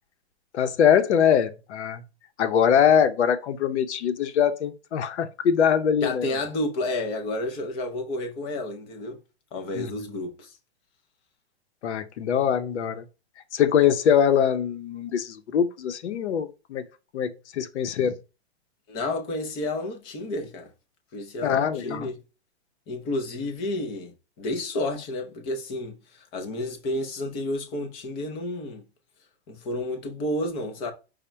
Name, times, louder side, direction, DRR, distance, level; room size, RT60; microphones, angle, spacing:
voice 1, 0.5-2.0 2.4-6.3 9.7-9.9 11.8-13.0 13.5-16.8 17.1-18.1 21.4-22.1, left 8 dB, 90° left, 0.7 m, -23 dB
voice 2, 6.0-9.2 9.5-10.5 18.9-20.7 21.1-22.2 22.9-28.8 29.5-30.9, left 1 dB, 15° left, 0.4 m, -31 dB
4.9 x 2.1 x 4.3 m
hypercardioid pair, 155°, 33 cm